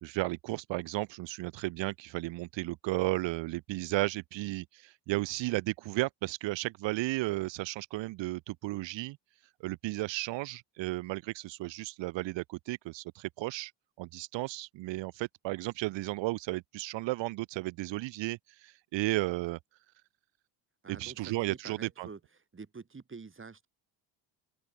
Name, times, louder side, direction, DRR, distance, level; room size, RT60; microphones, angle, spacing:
voice 1, 0.0-9.2 9.6-13.7 14.0-19.6 20.9-22.1, right 19 dB, 70° right, 2.2 m, -34 dB
voice 2, 20.8-22.2 22.5-23.7, right 4 dB, 25° right, 7.7 m, -47 dB
open air
supercardioid pair, 75°, 47 cm